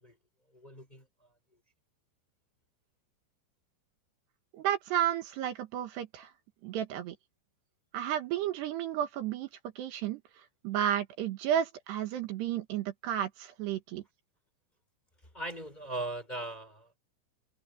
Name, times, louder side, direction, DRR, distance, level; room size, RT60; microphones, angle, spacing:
voice 1, 0.5-1.3 15.3-17.0, right 2 dB, 10° left, 5.9 m, -39 dB
voice 2, 4.5-6.3 6.6-7.2 7.9-9.5 9.8-14.0, right 10 dB, 75° right, 3.4 m, -32 dB
omnidirectional pair, 5.1 m